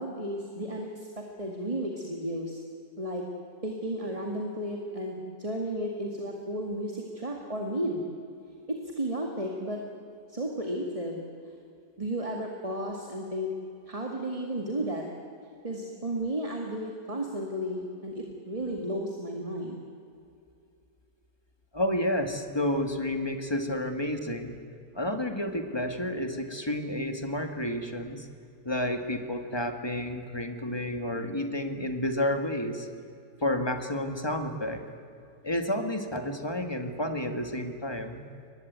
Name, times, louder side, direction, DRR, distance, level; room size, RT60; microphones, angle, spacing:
voice 1, 0.0-2.6 3.0-3.3 3.6-8.0 8.7-9.8 10.3-11.3 12.0-13.5 13.9-15.1 15.6-19.8, right 1 dB, 20° right, 1 dB, 2.1 m, -33 dB
voice 2, 21.7-24.6 24.9-28.3 28.6-32.9 33.4-34.8 35.4-38.2, left 1 dB, 15° left, 6 dB, 1.7 m, -30 dB
23.5 x 20.0 x 9.4 m, 2.5 s
omnidirectional pair, 1.8 m